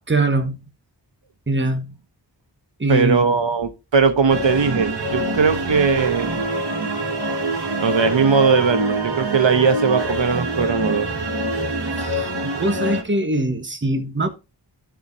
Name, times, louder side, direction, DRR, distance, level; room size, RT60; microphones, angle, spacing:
voice 1, 0.1-0.6 1.5-1.9 2.8-3.5 12.0-14.3, right 2 dB, 25° right, 1.2 m, -23 dB
voice 2, 2.9-6.5 7.8-11.1, right 5 dB, 90° right, 1.1 m, -19 dB
sound 1, 4.3-13.0, right 2 dB, 65° right, 1.8 m, -25 dB
13.0 x 5.0 x 2.7 m
wide cardioid pair, 65°, 43 cm